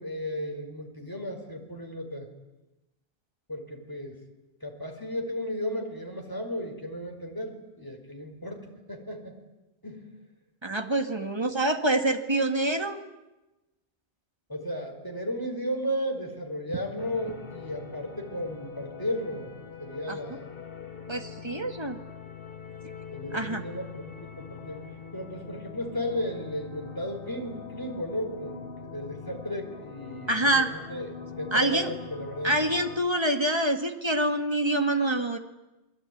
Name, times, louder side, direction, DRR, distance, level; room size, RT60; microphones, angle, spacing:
voice 1, 0.0-2.3 3.5-4.2 4.6-9.3 9.8-10.1 14.5-19.5 19.8-20.4 23.1-24.9 25.1-32.6, equal, 20° left, 3 dB, 4.8 m, -34 dB
voice 2, 10.6-13.0 20.1-20.2 21.1-22.0 23.3-23.6 30.3-30.7 31.5-31.9 32.4-35.4, right 1 dB, 25° right, 6 dB, 2.2 m, -26 dB
sound 1, 17.0-33.0, left 6 dB, 55° left, 2.1 m, -43 dB
28.0 x 22.0 x 9.5 m, 1.0 s
omnidirectional pair, 1.2 m